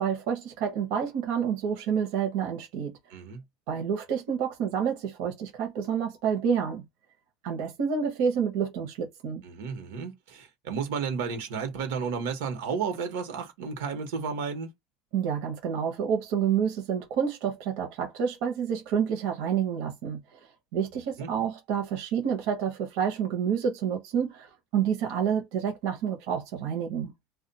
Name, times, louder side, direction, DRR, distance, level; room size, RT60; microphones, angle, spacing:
voice 1, 0.0-3.0 3.7-6.8 7.4-9.4 15.1-27.1, right 7 dB, 60° right, 0.9 m, -29 dB
voice 2, 3.1-3.4 9.4-14.7 21.2-21.3, right 6 dB, 85° right, 1.1 m, -32 dB
2.4 x 2.2 x 4.0 m
cardioid pair, 170°, 0 cm